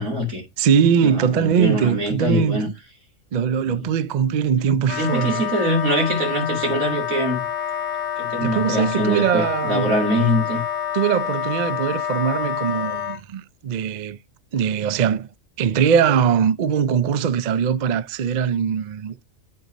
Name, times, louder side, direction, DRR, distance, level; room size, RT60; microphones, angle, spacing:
voice 1, 0.0-0.4 1.0-2.7 3.6-3.8 4.9-7.4 8.2-10.6, equal, 90° right, 3.2 m, -23 dB
voice 2, 0.6-2.6 3.3-5.4 8.4-9.9 10.9-14.2 14.5-15.3 15.6-19.2, right 7 dB, 65° right, 0.4 m, -21 dB
Wind instrument woodwind instrument, 4.8-13.2, left 9 dB, 70° left, 1.2 m, -27 dB
8.8 x 4.0 x 5.1 m
omnidirectional pair, 1.4 m